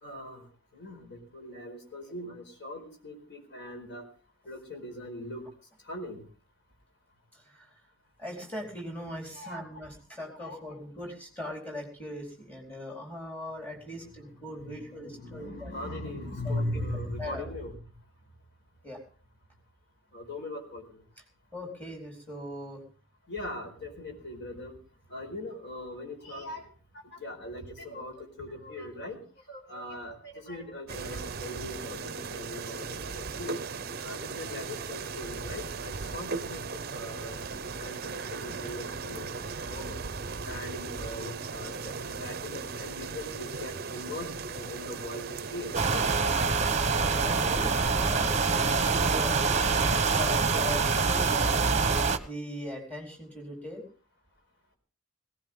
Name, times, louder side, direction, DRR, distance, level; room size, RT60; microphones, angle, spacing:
voice 1, 0.0-0.5 0.7-4.0 4.4-5.5 5.8-6.2 9.3-9.6 10.3-10.7 14.3-17.7 20.1-21.0 23.3-24.7 25.1-26.7 27.0-29.2 29.5-32.9 33.3-33.6 34.0-36.6 36.9-37.4 37.8-40.0 40.4-46.3, left 1 dB, 50° left, 3 dB, 4.7 m, -40 dB
voice 2, 7.3-7.7 8.2-15.7 16.4-16.7 17.2-17.5 18.8-19.0 21.5-22.8 47.0-51.7 52.2-53.8, left 1 dB, 5° left, 0 dB, 4.3 m, -40 dB
sound 1, 30.9-46.2, right 4 dB, 45° right, 0.7 m, -37 dB
sound 2, 45.7-52.2, right 4 dB, 30° right, 1.0 m, -25 dB
18.0 x 17.5 x 3.7 m, 0.39 s
head